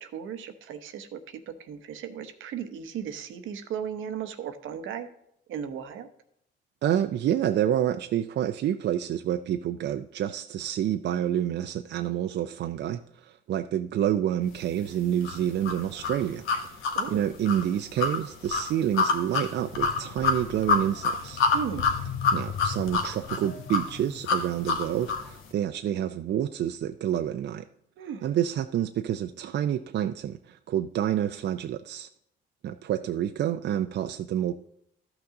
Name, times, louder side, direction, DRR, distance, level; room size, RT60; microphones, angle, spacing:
voice 1, 0.0-5.1 5.5-6.1 16.5-16.6 16.9-17.2 21.5-22.1 28.0-28.3, right 8 dB, 80° right, 0.9 m, -36 dB
voice 2, 6.8-16.4 17.1-21.4 22.3-27.6 28.2-32.1 32.6-34.5, right 10 dB, 60° right, 0.5 m, -28 dB
sound 1, 15.2-25.3, left 4 dB, 85° left, 1.2 m, -28 dB
13.0 x 6.0 x 3.7 m
cardioid pair, 90°, 20 cm